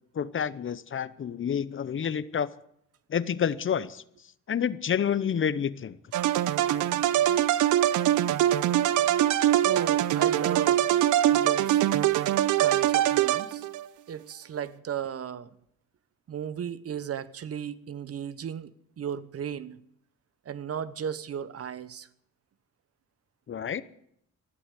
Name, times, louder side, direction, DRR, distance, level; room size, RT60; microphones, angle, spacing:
voice 1, 0.1-2.5 3.1-4.0 4.5-6.0 23.5-23.8, left 8 dB, 40° left, 0.8 m, -28 dB
sound 1, 6.1-13.8, right 12 dB, 80° right, 0.8 m, -23 dB
voice 2, 9.6-10.8 11.3-11.8 12.6-13.7 14.1-15.5 16.3-18.7 19.0-19.8 20.5-22.1, right 8 dB, 50° right, 1.0 m, -35 dB
14.0 x 12.0 x 8.2 m
cardioid pair, 90°, 30 cm